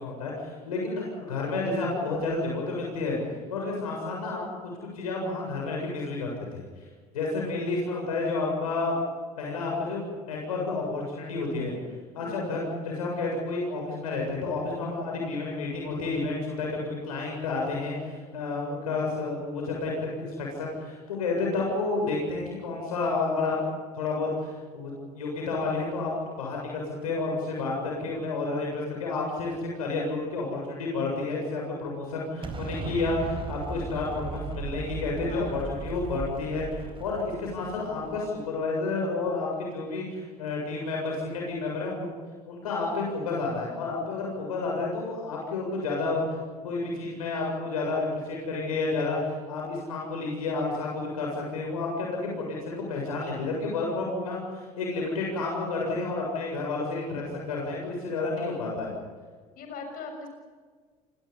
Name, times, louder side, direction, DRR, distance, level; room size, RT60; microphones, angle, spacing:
voice 1, 0.0-3.2 3.5-4.4 4.9-6.6 7.1-9.0 9.4-11.7 12.1-23.6 23.9-26.1 26.4-42.2 42.5-46.4 46.6-58.9, left 3 dB, 75° left, -1 dB, 7.5 m, -30 dB
voice 2, 12.2-12.5 28.5-28.7 35.2-35.6 59.5-60.3, left 4 dB, 50° left, 4 dB, 6.4 m, -41 dB
Explosion, 32.4-38.4, right 4 dB, 30° right, 4.2 m, -37 dB
29.5 x 24.5 x 5.5 m, 1.5 s
figure-of-eight pair, 65°, 19 cm